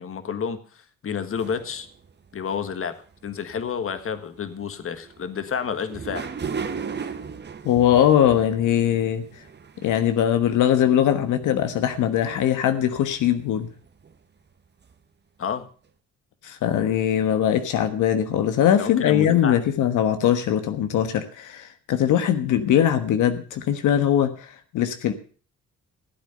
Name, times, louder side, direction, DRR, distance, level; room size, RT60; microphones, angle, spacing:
voice 1, 0.0-1.9 2.3-3.0 3.2-6.3 15.4-15.7 18.8-19.6, left 7 dB, 45° left, 10 dB, 1.6 m, -30 dB
sound 1, 1.4-4.0 4.3-14.1 14.6-14.7 14.9-15.0, right 6 dB, 35° right, 1.3 m, -38 dB
voice 2, 7.6-9.4 9.8-13.7 16.4-25.1, left 10 dB, 85° left, 8 dB, 1.3 m, -21 dB
15.0 x 8.6 x 6.6 m, 0.41 s
cardioid pair, 90°, 30 cm